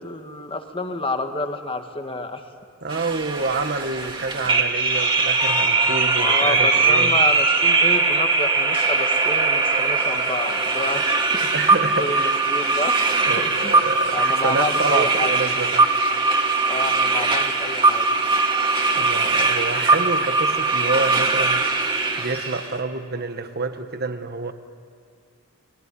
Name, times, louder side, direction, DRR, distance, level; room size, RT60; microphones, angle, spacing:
voice 1, 0.0-2.4 6.2-11.5 12.0-13.0 13.4-13.8 14.1-15.3 16.6-18.1, left 2 dB, 25° left, 6 dB, 1.6 m, -29 dB
voice 2, 2.8-7.2 11.5-12.5 13.3-15.9 18.9-21.7 22.2-24.5, right 3 dB, 50° right, 8 dB, 1.5 m, -28 dB
sound 1, 2.9-22.7, right 3 dB, 25° right, 2.3 m, -20 dB
29.5 x 20.5 x 9.9 m, 2.2 s
head